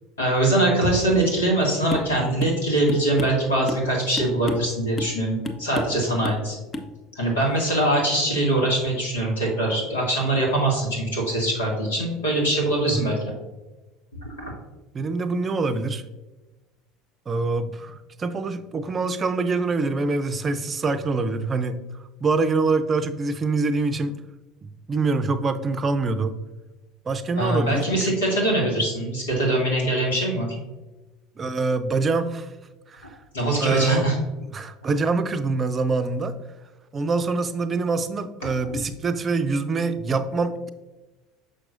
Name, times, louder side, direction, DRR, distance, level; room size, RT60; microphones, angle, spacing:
voice 1, 0.2-6.6 7.2-13.2 14.2-14.5 27.4-30.5 33.3-34.2, right 1 dB, 90° left, -2 dB, 2.0 m, -22 dB
sound 1, 1.9-2.1 2.4-2.6 2.9-3.9 4.2-4.7 5.0-5.2 5.4-6.0 6.2-6.4 6.7-6.9, left 1 dB, 30° left, 0.7 m, -31 dB
voice 2, 14.9-16.0 17.3-21.8 22.2-24.2 24.6-26.4 27.1-28.1 31.4-32.5 32.9-33.1 33.6-34.1 34.5-36.3 36.9-40.7, right 3 dB, 30° right, 11 dB, 0.5 m, -25 dB
6.4 x 6.0 x 2.6 m, 1.1 s
hypercardioid pair, 75°, 0 cm